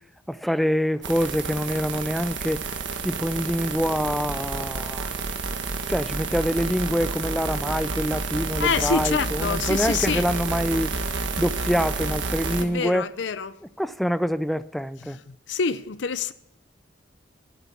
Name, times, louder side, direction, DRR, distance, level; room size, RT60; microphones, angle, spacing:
voice 1, 0.3-2.6 3.0-5.1 5.9-10.9 11.4-13.1 13.8-15.2, equal, ahead, 0.4 m, -25 dB
sound 1, 1.0-12.6, right 3 dB, 80° right, 1.5 m, -30 dB
voice 2, 8.6-10.2 12.6-13.6 15.0-16.3, left 5 dB, 75° left, 0.6 m, -27 dB
13.0 x 8.2 x 7.2 m
head